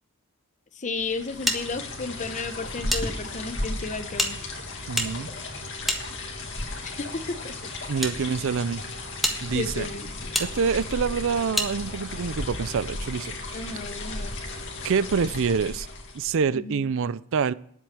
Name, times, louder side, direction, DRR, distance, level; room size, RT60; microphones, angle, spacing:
voice 1, 0.8-4.4 6.8-7.5 8.2-8.3 9.5-10.1 13.5-14.4 16.5-16.9, left 3 dB, 35° left, 10 dB, 0.9 m, -33 dB
sound 1, 1.0-16.4, left 2 dB, 60° left, 2.2 m, -35 dB
sound 2, 1.5-3.0 3.3-3.4 4.1-6.6 7.4-8.1 8.7-8.8 9.2-9.4 10.3-10.5 11.5-11.7, equal, ahead, 1.5 m, -29 dB
voice 2, 4.9-5.3 7.9-8.8 9.4-9.9 10.4-13.6 14.8-15.9 16.1-17.5, right 6 dB, 60° right, 18 dB, 0.4 m, -26 dB
10.0 x 8.2 x 7.6 m, 0.65 s
head